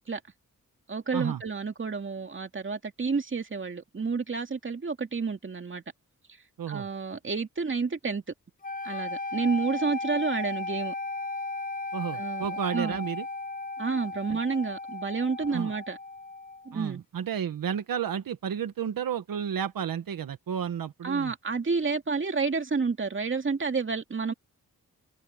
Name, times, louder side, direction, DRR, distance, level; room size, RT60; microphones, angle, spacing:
voice 1, 0.9-5.8 6.7-8.2 8.8-10.9 12.1-12.5 12.7-13.0 13.8-16.0 16.7-17.0 21.0-24.3, right 4 dB, 35° right, 2.4 m, -30 dB
sound 1, 8.6-16.7, left 3 dB, 25° left, 0.7 m, -35 dB
voice 2, 11.9-13.3 14.3-14.4 15.5-15.7 16.7-21.3, right 8 dB, 85° right, 1.2 m, -32 dB
wide cardioid pair, 120°, 33 cm